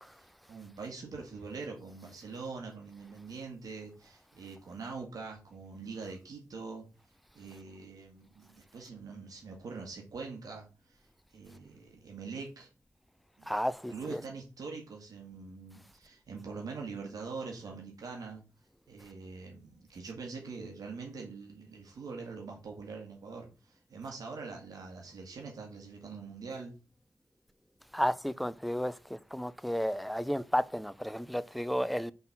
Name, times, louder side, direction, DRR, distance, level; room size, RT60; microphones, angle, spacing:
voice 1, 0.5-6.9 7.3-11.0 11.3-12.7 13.4-13.5 13.9-18.4 18.9-26.8, right 4 dB, 80° right, 1.8 m, -43 dB
voice 2, 13.5-14.2 27.9-32.1, equal, ahead, 0.5 m, -32 dB
5.5 x 4.0 x 5.9 m
cardioid pair, 55°, 6 cm